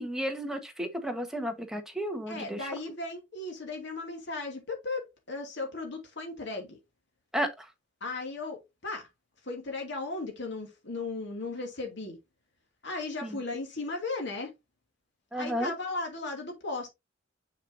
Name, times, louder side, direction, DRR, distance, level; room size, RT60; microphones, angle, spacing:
voice 1, 0.0-2.7 7.3-7.7 13.2-13.4 15.3-15.7, equal, 5° right, 1.4 m, -33 dB
voice 2, 2.3-6.8 8.0-9.1 9.4-12.2 12.8-14.5 15.3-16.9, left 3 dB, 65° left, 2.6 m, -36 dB
6.7 x 6.6 x 2.8 m
head